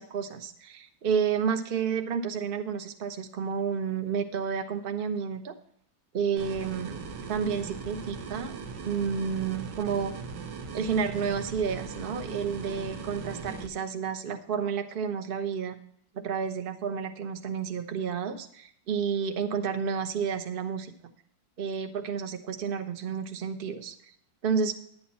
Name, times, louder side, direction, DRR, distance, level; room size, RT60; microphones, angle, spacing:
voice 1, 0.0-5.5 6.1-7.0 7.3-8.5 8.8-10.1 10.7-15.7 16.1-20.9 21.6-23.9 24.4-24.8, right 6 dB, 40° right, 6 dB, 0.9 m, -30 dB
sound 1, 6.4-13.7, right 5 dB, 70° right, 1.7 m, -39 dB
11.0 x 8.8 x 4.2 m, 0.67 s
omnidirectional pair, 2.1 m